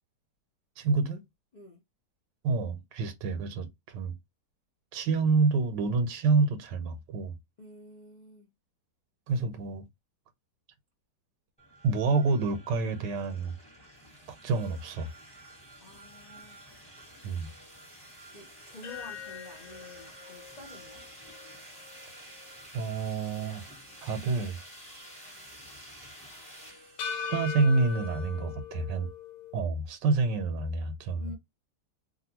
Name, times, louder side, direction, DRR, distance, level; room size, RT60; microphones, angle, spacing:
voice 1, 0.8-1.2 2.4-4.2 4.9-7.3 9.3-9.9 11.8-13.5 14.3-15.1 17.2-17.5 22.7-23.6 24.0-24.6 27.1-29.1 29.5-31.2, right 4 dB, 80° right, 1.4 m, -28 dB
voice 2, 7.6-8.5 15.8-16.6 18.3-21.0 31.2-31.3, left 2 dB, 55° left, 0.5 m, -48 dB
sound 1, 11.6-28.4, right 1 dB, 5° left, 0.8 m, -50 dB
sound 2, 18.8-23.1 23.5-23.6 27.0-29.6, left 6 dB, 80° left, 1.3 m, -41 dB
3.0 x 2.5 x 2.7 m
omnidirectional pair, 1.9 m